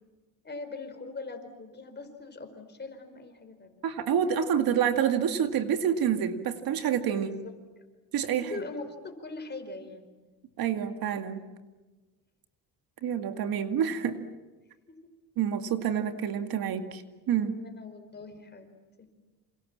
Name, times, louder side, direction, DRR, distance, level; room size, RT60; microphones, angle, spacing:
voice 1, 0.4-3.8 8.4-10.1 14.9-15.0 17.5-19.1, left 3 dB, 25° left, 7 dB, 4.9 m, -41 dB
voice 2, 3.8-7.4 8.1-8.5 10.6-11.5 13.0-14.2 15.4-17.0 17.3-17.6, right 8 dB, 65° right, 7 dB, 2.3 m, -28 dB
28.5 x 28.0 x 7.5 m, 1.2 s
cardioid pair, 105°, 38 cm